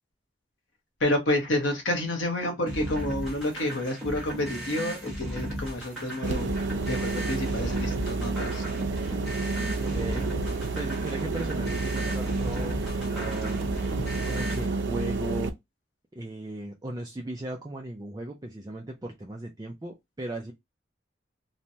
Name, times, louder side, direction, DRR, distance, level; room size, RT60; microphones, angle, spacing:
voice 1, 1.0-6.5 6.8-8.6, left 1 dB, 85° left, 1.0 m, -29 dB
sound 1, 2.7-14.7, equal, 5° right, 1.2 m, -36 dB
sound 2, 6.2-15.5, right 3 dB, 80° right, 0.5 m, -30 dB
voice 2, 9.8-13.7 14.3-15.5 16.1-20.5, right 1 dB, 20° right, 0.4 m, -37 dB
3.1 x 2.2 x 2.6 m
head